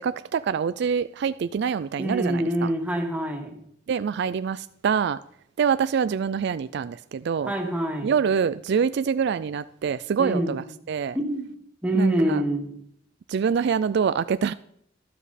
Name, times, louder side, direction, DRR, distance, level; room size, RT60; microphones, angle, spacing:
voice 1, 0.0-2.7 3.9-5.2 5.6-7.5 8.0-11.2 11.9-12.4 13.3-14.5, right 6 dB, 60° right, 14 dB, 0.3 m, -25 dB
voice 2, 2.0-3.5 7.4-8.1 10.2-10.5 11.1-11.5 11.8-12.7, right 1 dB, 5° right, 1 dB, 1.9 m, -25 dB
12.5 x 12.0 x 4.2 m, 0.72 s
head